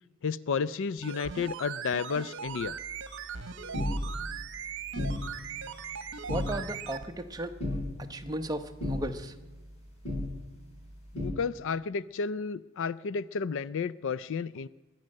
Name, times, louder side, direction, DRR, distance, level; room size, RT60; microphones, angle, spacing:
voice 1, 0.2-2.8 11.1-14.7, left 5 dB, 60° left, 19 dB, 0.4 m, -32 dB
sound 1, 1.0-7.1 7.3-7.4, right 6 dB, 55° right, 1.1 m, -39 dB
sound 2, 2.5-11.3, left 1 dB, 80° left, 7.1 m, -37 dB
voice 2, 6.3-7.5 8.1-9.3, right 1 dB, 15° right, 6 dB, 0.9 m, -35 dB
22.5 x 8.8 x 6.5 m, 1.2 s
head